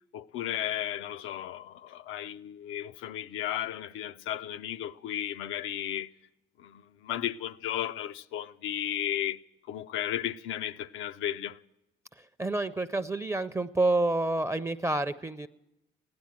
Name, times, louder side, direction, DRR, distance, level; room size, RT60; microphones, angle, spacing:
voice 1, 0.1-6.1 6.6-9.4 9.7-11.6, left 11 dB, 90° left, 0.5 m, -34 dB
voice 2, 12.4-15.5, right 2 dB, 15° right, 0.4 m, -28 dB
15.5 x 10.5 x 7.5 m
cardioid pair, 90°, 20 cm